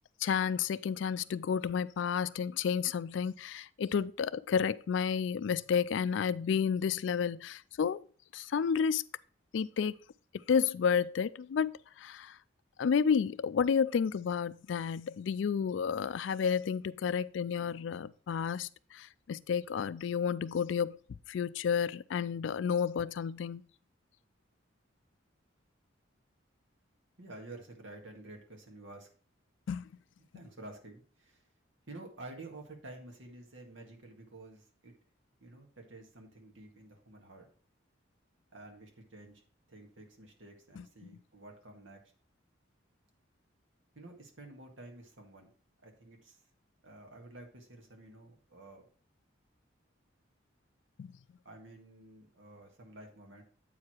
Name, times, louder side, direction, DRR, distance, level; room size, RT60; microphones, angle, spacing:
voice 1, 0.2-8.0 8.3-9.0 9.5-9.9 10.5-12.4 12.8-21.0 21.3-23.6 29.7-29.9 40.8-40.9 51.0-51.1, left 6 dB, 70° left, 0.3 m, -31 dB
voice 2, 27.2-29.1 30.3-31.4 31.9-34.9 35.4-37.5 38.5-39.4 39.7-42.0 44.0-45.5 45.8-46.4 46.8-48.8 51.5-53.4, right 2 dB, 75° right, 1.9 m, -50 dB
8.4 x 4.8 x 4.4 m
head